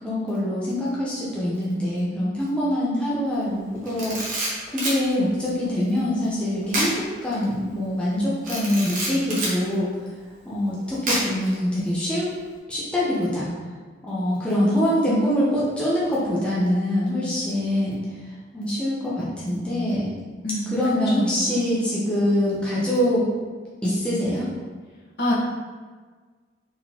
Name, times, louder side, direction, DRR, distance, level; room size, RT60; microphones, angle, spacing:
voice 1, 0.0-4.2 4.7-9.9 10.4-12.3 12.7-13.5 14.0-18.0 18.5-20.1 20.7-23.3 23.8-24.5, left 1 dB, 5° left, -9 dB, 0.9 m, -24 dB
Camera, 3.8-5.0 6.7-7.0 7.3-7.4 8.4-9.6 11.1-11.5, right 1 dB, 45° right, 1.1 m, -27 dB
voice 2, 20.4-20.8 21.2-21.3 25.2-25.3, left 1 dB, 65° left, -7 dB, 1.3 m, -25 dB
4.5 x 3.8 x 3.0 m, 1.5 s
head